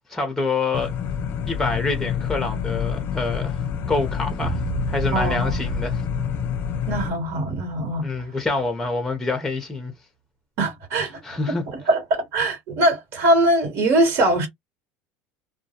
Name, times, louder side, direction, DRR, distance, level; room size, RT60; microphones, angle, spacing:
voice 1, 0.1-0.9 1.5-4.6 4.9-6.0 8.0-9.9 11.2-11.6, left 3 dB, 5° left, 0.6 m, -26 dB
sound 1, 0.7-7.1, left 8 dB, 45° left, 0.4 m, -27 dB
sound 2, 4.4-8.9, right 10 dB, 40° right, 0.8 m, -34 dB
voice 2, 5.1-5.5 6.9-8.1 10.6-11.2 11.7-14.5, right 1 dB, 55° right, 1.2 m, -21 dB
2.2 x 2.2 x 2.7 m
supercardioid pair, 130°, 5 cm